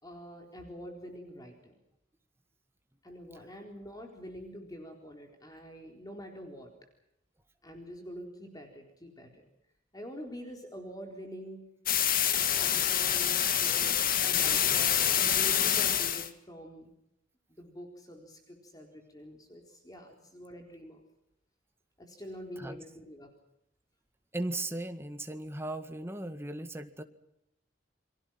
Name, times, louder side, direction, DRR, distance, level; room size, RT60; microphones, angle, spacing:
voice 1, 0.0-1.8 3.0-6.7 7.6-9.5 9.9-11.7 12.6-16.9 17.5-21.0 22.0-23.3, equal, 20° left, 3 dB, 4.1 m, -46 dB
sound 1, 11.9-16.3, left 9 dB, 50° left, 1.9 m, -26 dB
voice 2, 24.3-27.0, right 2 dB, 15° right, 7 dB, 1.9 m, -38 dB
30.0 x 23.0 x 5.9 m, 0.79 s
head